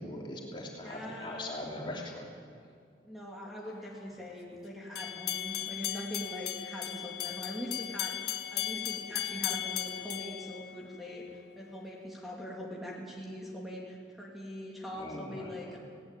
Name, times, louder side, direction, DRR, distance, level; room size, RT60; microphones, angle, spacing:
voice 1, 0.0-2.3 14.9-15.8, left 1 dB, 25° left, -2 dB, 2.9 m, -41 dB
voice 2, 0.8-1.6 3.0-15.8, equal, ahead, -3 dB, 2.8 m, -42 dB
sound 1, 5.0-11.2, left 12 dB, 70° left, 1.5 m, -36 dB
19.5 x 18.0 x 9.1 m, 2.3 s
head